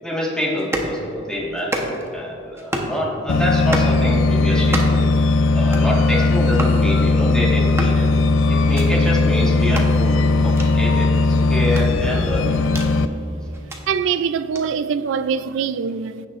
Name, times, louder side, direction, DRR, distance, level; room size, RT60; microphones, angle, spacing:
voice 1, 0.0-5.0 5.5-8.1 8.5-12.6, equal, 5° left, 1.5 m, -26 dB
sound 1, 0.6-0.9 1.6-2.1 2.6-3.0 3.5-4.0 4.6-5.1 5.6-5.9 6.5-6.8 7.6-8.0 8.6-8.9 9.6-9.9 10.5-10.7 11.6-12.9 13.5-13.8 14.5-14.7, right 1 dB, 15° right, 0.9 m, -29 dB
sound 2, 3.3-13.1, left 3 dB, 70° left, 0.4 m, -18 dB
voice 2, 13.9-16.3, right 6 dB, 70° right, 0.3 m, -23 dB
15.5 x 6.2 x 2.5 m
head